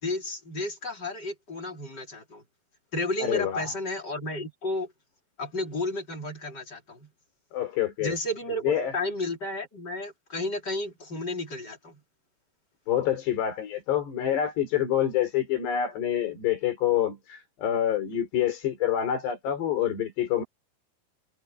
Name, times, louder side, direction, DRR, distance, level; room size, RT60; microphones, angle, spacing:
voice 1, 0.0-2.4 2.9-4.9 5.4-7.1 8.0-12.0, left 1 dB, 25° left, 3.4 m, -32 dB
voice 2, 3.2-3.7 7.5-8.1 8.6-8.9 12.9-20.4, left 10 dB, 80° left, 6.4 m, -27 dB
omnidirectional pair, 4.8 m